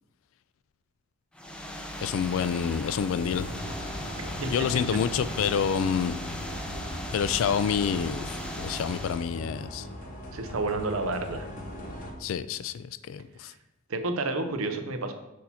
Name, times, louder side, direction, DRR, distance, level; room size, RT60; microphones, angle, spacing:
sound 1, 1.3-9.3, equal, 5° left, 0.5 m, -38 dB
voice 1, 2.0-3.5 4.5-6.2 7.1-9.9 12.2-13.5, left 7 dB, 70° left, 14 dB, 0.3 m, -28 dB
sound 2, 3.2-12.1, left 1 dB, 40° left, 0.9 m, -39 dB
voice 2, 10.3-11.5 13.9-15.1, right 2 dB, 80° right, 7 dB, 0.7 m, -30 dB
6.3 x 2.8 x 5.6 m, 0.94 s
head